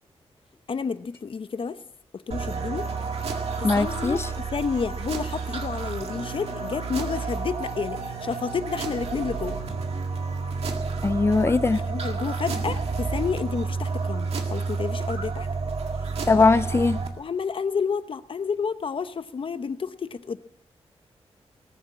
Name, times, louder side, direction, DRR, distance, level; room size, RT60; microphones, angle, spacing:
voice 1, 0.7-1.8 2.1-2.9 3.6-9.6 11.7-15.5 16.3-16.5 17.2-20.4, left 5 dB, 55° left, 0.8 m, -30 dB
sound 1, 2.3-17.1, right 4 dB, 70° right, 1.9 m, -30 dB
voice 2, 3.6-4.2 11.0-11.8 16.3-17.0, left 3 dB, 25° left, 0.5 m, -20 dB
19.0 x 7.2 x 8.5 m
wide cardioid pair, 90°, 11 cm